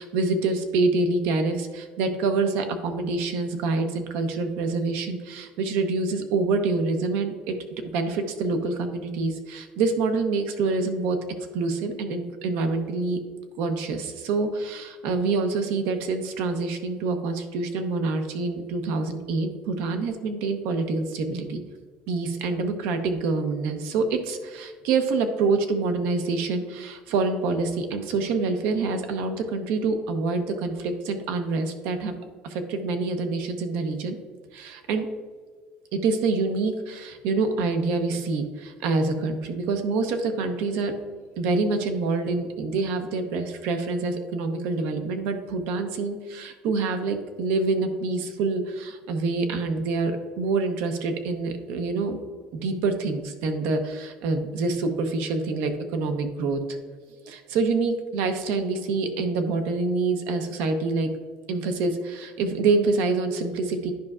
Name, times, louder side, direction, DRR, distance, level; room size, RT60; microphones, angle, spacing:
voice 1, 0.0-7.6 7.9-11.2 11.5-13.2 13.6-21.6 22.1-32.2 32.4-34.2 34.5-35.1 35.9-40.9 41.4-52.2 52.5-56.6 57.3-61.1 61.5-63.9, right 3 dB, 80° right, 7 dB, 0.8 m, -26 dB
10.5 x 5.4 x 2.4 m, 1.5 s
cardioid pair, 135°, 4 cm